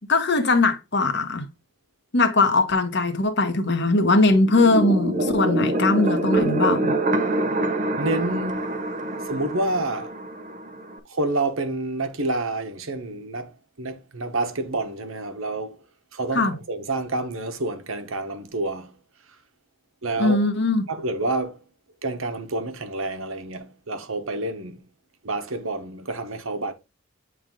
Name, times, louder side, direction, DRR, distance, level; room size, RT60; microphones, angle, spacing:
voice 1, 0.1-1.4 2.1-7.0 16.3-16.5 20.2-20.8, left 2 dB, 50° left, 1.1 m, -20 dB
sound 1, 4.4-11.0, right 1 dB, 35° right, 0.8 m, -25 dB
voice 2, 8.0-8.7 9.3-10.1 11.1-13.5 13.8-15.8 16.1-18.9 20.0-20.4 20.9-21.6 22.0-24.8 25.2-26.7, right 2 dB, 70° right, 1.1 m, -28 dB
8.9 x 3.5 x 3.6 m
head